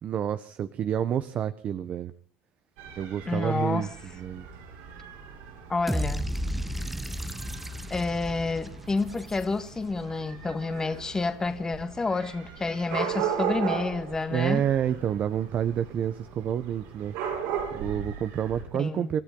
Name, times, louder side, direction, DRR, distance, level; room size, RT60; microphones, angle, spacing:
voice 1, 0.0-2.1 3.0-3.9 4.1-4.5 14.3-17.1 17.7-19.2, right 9 dB, 40° right, 0.9 m, -28 dB
Dog / Cat, 2.8-18.6, right 8 dB, 80° right, 7.8 m, -37 dB
voice 2, 3.2-3.9 5.7-6.3 7.9-14.6 18.7-19.1, left 3 dB, 15° left, 1.6 m, -29 dB
sound 1, 5.9-10.0, equal, 5° right, 1.2 m, -33 dB
28.5 x 13.5 x 3.8 m
cardioid pair, 130°, 4 cm